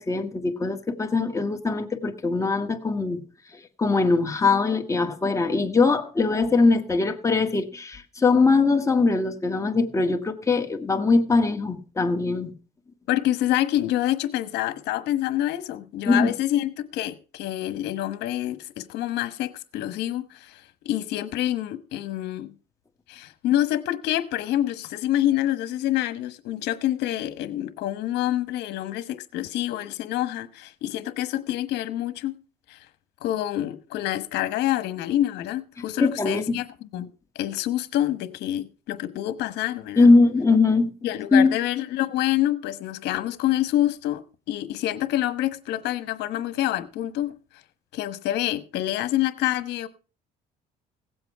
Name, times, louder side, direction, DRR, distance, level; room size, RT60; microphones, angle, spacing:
voice 1, 0.0-3.2 3.8-12.5 16.1-16.3 36.0-36.6 40.0-40.9 41.3-41.5, left 3 dB, 20° left, 1.6 m, -21 dB
voice 2, 13.1-22.5 23.1-32.3 32.7-32.8 33.2-36.7 36.9-37.1 37.3-40.1 41.0-44.2 44.5-47.3 47.9-49.9, left 13 dB, 85° left, 1.2 m, -27 dB
17.0 x 7.9 x 4.6 m
cardioid pair, 110°, 17 cm